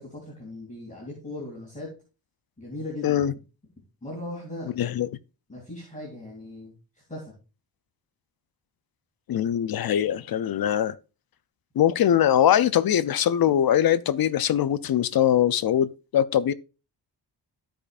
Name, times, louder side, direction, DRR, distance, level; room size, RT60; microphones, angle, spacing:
voice 1, 0.0-1.9 2.6-3.2 4.0-4.7 5.5-7.3, left 1 dB, 15° left, 2.7 m, -38 dB
voice 2, 4.8-5.1 9.3-10.9 11.8-16.5, left 10 dB, 55° left, 0.5 m, -22 dB
14.5 x 5.1 x 2.4 m
wide cardioid pair, 130°, 43 cm